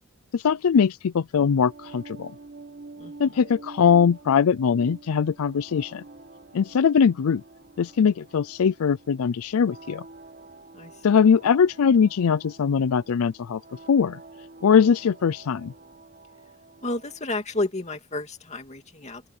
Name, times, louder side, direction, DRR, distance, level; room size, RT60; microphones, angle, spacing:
voice 1, 0.3-2.3 3.2-6.0 6.5-7.4 7.8-10.0 11.0-13.6 13.9-14.2 14.6-15.7, left 6 dB, 85° left, 0.4 m, -21 dB
sound 1, 1.3-17.3, right 3 dB, 45° right, 1.7 m, -47 dB
voice 2, 3.0-3.3 10.7-10.9 16.8-19.2, left 2 dB, 30° left, 2.4 m, -31 dB
open air
head